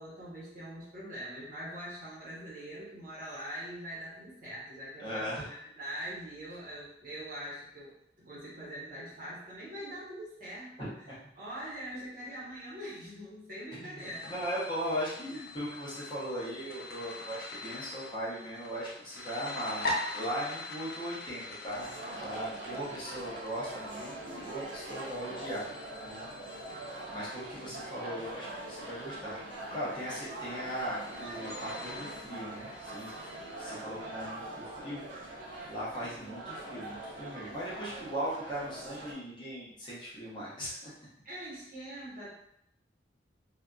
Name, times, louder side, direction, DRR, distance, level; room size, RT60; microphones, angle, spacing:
voice 1, 0.0-14.3 36.0-36.4 41.2-42.3, equal, 45° right, -7 dB, 1.0 m, -43 dB
voice 2, 5.0-5.4 10.8-11.2 13.7-13.9 14.2-25.7 26.0-26.3 27.1-29.4 29.7-33.3 33.6-35.0 35.7-40.9, equal, 25° left, -9 dB, 0.7 m, -38 dB
sound 1, 14.0-33.7, left 2 dB, 55° left, 0.4 m, -43 dB
sound 2, 21.7-39.1, right 2 dB, 80° right, 0.6 m, -43 dB
2.7 x 2.4 x 2.3 m, 0.75 s
head